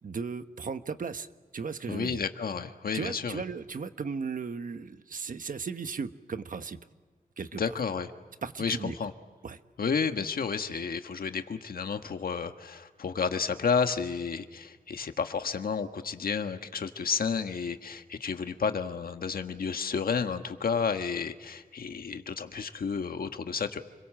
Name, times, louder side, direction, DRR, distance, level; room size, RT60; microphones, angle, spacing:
voice 1, 0.0-2.2 2.9-6.8 7.4-7.6 8.4-9.1 9.4-9.6, right 5 dB, 65° right, 9 dB, 1.2 m, -36 dB
voice 2, 1.9-3.4 7.6-8.1 8.6-9.1 9.8-23.8, left 6 dB, 85° left, 7 dB, 1.5 m, -31 dB
29.5 x 22.5 x 7.6 m, 1.4 s
wide cardioid pair, 115°, 15 cm